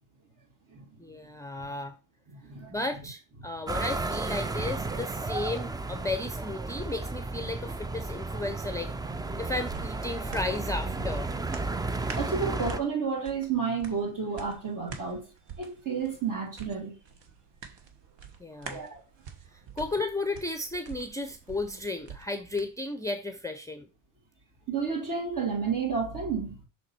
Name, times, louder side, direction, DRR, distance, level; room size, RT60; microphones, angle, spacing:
voice 1, 1.0-1.9 2.7-8.9 9.4-11.3 18.4-18.8 19.8-23.9, left 2 dB, 5° left, 0.7 m, -34 dB
voice 2, 2.3-2.8 3.4-3.5 12.2-15.3 15.6-17.0 18.7-19.0 24.7-26.6, right 5 dB, 40° right, 3.2 m, -31 dB
sound 1, 3.7-12.8, right 3 dB, 10° right, 0.3 m, -33 dB
sound 2, 9.0-22.7 23.1-23.2, right 6 dB, 60° right, 1.4 m, -47 dB
6.2 x 4.0 x 4.4 m
supercardioid pair, 70°, 49 cm